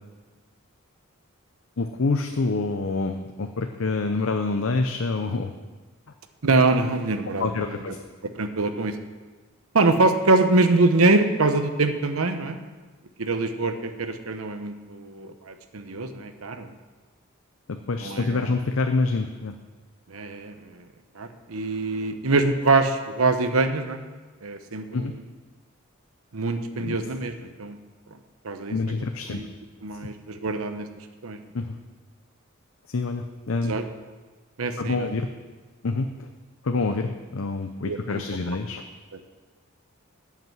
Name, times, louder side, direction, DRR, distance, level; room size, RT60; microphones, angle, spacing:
voice 1, 1.8-5.5 7.4-8.0 17.7-19.5 24.9-25.1 26.8-27.0 28.7-29.4 31.5-31.8 32.9-33.7 34.8-35.3 35.8-36.3 36.6-38.8, left 3 dB, 70° left, 5 dB, 0.6 m, -27 dB
voice 2, 6.4-7.9 8.3-9.0 9.7-12.6 13.2-16.8 18.0-18.5 20.1-20.9 21.1-24.0 24.4-25.2 26.3-27.8 28.4-28.8 29.3-29.5 29.8-30.9 31.2-31.4 33.7-33.8 34.6-35.1 37.8-38.2, right 3 dB, 80° right, 8 dB, 0.9 m, -24 dB
12.0 x 5.8 x 7.8 m, 1.3 s
head